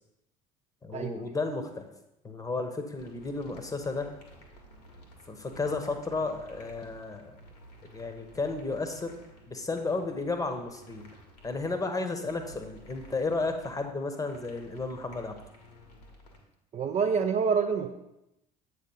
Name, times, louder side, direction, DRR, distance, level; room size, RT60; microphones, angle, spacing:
voice 1, 0.8-1.9 2.2-4.1 5.3-7.4 7.9-9.1 9.5-11.0 11.4-15.3, left 3 dB, 15° left, 6 dB, 1.0 m, -33 dB
sound 1, 3.0-16.4, right 1 dB, 80° left, 1.5 m, -53 dB
voice 2, 16.7-17.9, right 6 dB, 35° right, 5 dB, 0.5 m, -27 dB
8.0 x 3.2 x 5.4 m, 0.88 s
figure-of-eight pair, 60°, 20 cm